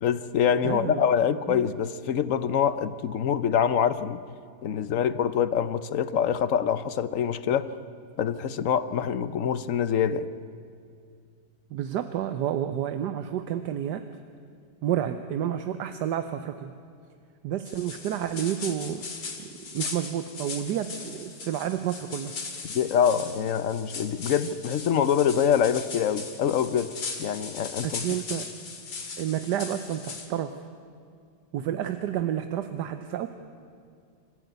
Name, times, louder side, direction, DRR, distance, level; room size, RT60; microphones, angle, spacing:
voice 1, 0.0-4.2 4.6-7.7 8.2-10.3 22.6-26.9 27.2-28.0, left 8 dB, 60° left, 14 dB, 0.9 m, -25 dB
voice 2, 0.6-1.1 1.5-1.6 11.7-14.0 14.8-16.7 17.4-19.0 19.4-22.3 27.8-28.5 29.2-30.6 31.5-33.3, right 10 dB, 75° right, 9 dB, 1.4 m, -30 dB
sound 1, 17.7-30.3, left 4 dB, 75° left, 2.7 m, -39 dB
26.5 x 14.5 x 9.2 m, 2.3 s
omnidirectional pair, 1.9 m